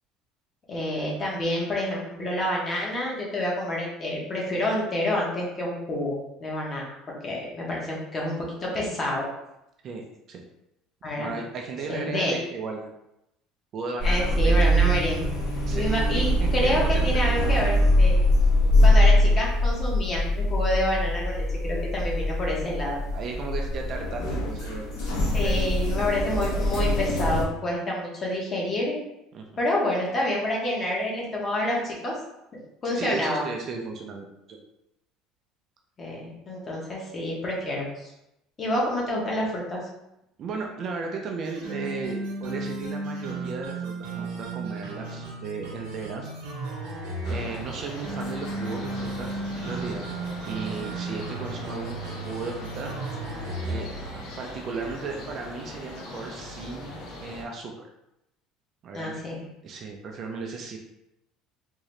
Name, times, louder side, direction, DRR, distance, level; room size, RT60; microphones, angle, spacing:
voice 1, 0.7-6.8 7.2-9.2 11.0-11.3 11.9-12.3 14.0-15.3 15.7-18.2 18.8-23.0 25.3-29.0 29.6-32.2 32.8-33.4 36.0-38.1 38.6-39.8 58.9-59.5, left 1 dB, 25° left, -3 dB, 1.0 m, -28 dB
voice 2, 11.2-12.9 13.7-14.5 15.7-17.1 23.1-24.9 25.4-25.7 29.3-29.5 32.9-34.6 40.4-46.3 47.3-50.0 50.5-52.9 53.7-53.9 54.4-56.9 57.2-57.9 58.8-59.2 59.6-60.8, right 4 dB, 35° right, 2 dB, 0.4 m, -35 dB
sound 1, 14.0-27.4, equal, 80° left, 1.2 m, -23 dB
Dapper Drake Sting, 41.4-54.3, right 2 dB, 80° right, 0.9 m, -35 dB
sound 2, 47.2-57.4, equal, 55° left, 0.8 m, -39 dB
3.7 x 2.6 x 3.1 m, 0.86 s
cardioid pair, 160°, 0 cm